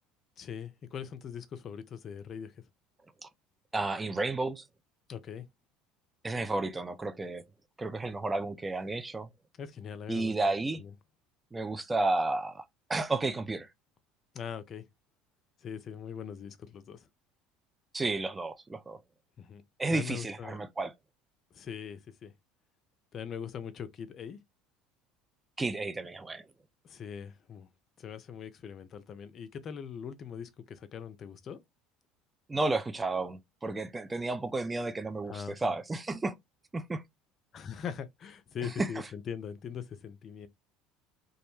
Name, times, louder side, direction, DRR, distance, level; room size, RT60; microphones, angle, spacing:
voice 1, 0.4-2.6 5.1-5.5 9.6-10.5 10.8-10.9 14.3-14.8 15.6-17.1 19.4-19.6 19.9-20.6 21.5-22.3 23.1-24.4 26.8-27.7 28.0-31.6 35.3-35.8 37.5-40.5, left 7 dB, 45° left, 0.5 m, -41 dB
voice 2, 3.7-4.6 6.2-7.4 7.8-9.3 10.1-10.8 11.5-12.6 12.9-13.7 17.9-19.0 19.8-20.9 25.6-26.4 32.5-36.3 36.7-37.0 38.6-38.9, right 2 dB, 20° right, 0.3 m, -32 dB
2.3 x 2.1 x 3.0 m
hypercardioid pair, 75°, 0 cm